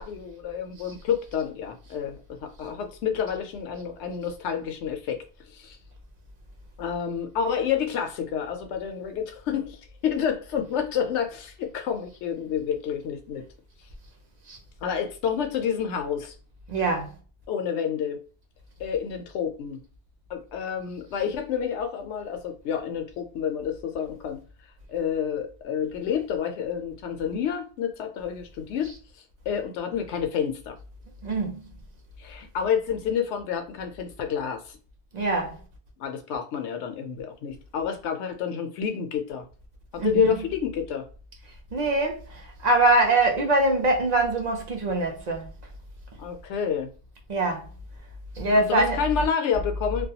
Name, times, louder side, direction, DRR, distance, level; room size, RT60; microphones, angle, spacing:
voice 1, 0.0-5.2 5.5-5.8 6.8-13.4 14.8-16.3 17.5-18.2 18.8-19.8 20.3-24.4 24.9-28.9 29.5-30.8 32.2-34.8 36.0-39.5 39.9-41.1 46.2-46.9 48.6-50.1, left 7 dB, 80° left, 0.9 m, -29 dB
voice 2, 16.7-17.1 31.2-31.6 35.1-35.6 40.0-40.4 41.7-45.5 47.3-47.7 48.4-49.0, right 2 dB, 50° right, 0.6 m, -23 dB
2.3 x 2.2 x 2.7 m
omnidirectional pair, 1.2 m